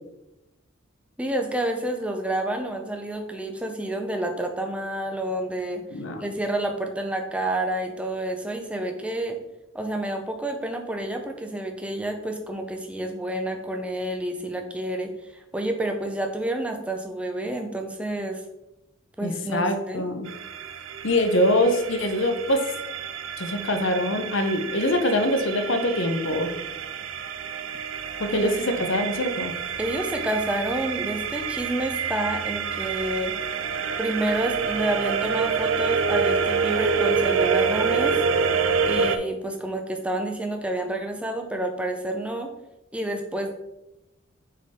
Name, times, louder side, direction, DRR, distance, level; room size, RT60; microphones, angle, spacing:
voice 1, 1.2-5.8 6.2-9.4 9.7-18.4 19.2-20.1 29.8-33.3 34.0-38.2 38.9-42.5 42.9-43.5, right 1 dB, 5° right, 4 dB, 0.6 m, -29 dB
voice 2, 5.9-6.3 19.2-20.3 21.0-22.6 23.4-26.5 28.2-29.5, left 1 dB, 60° left, 6 dB, 0.7 m, -24 dB
sound 1, 20.3-39.2, right 5 dB, 65° right, 0.5 m, -27 dB
6.4 x 3.9 x 4.2 m, 0.95 s
head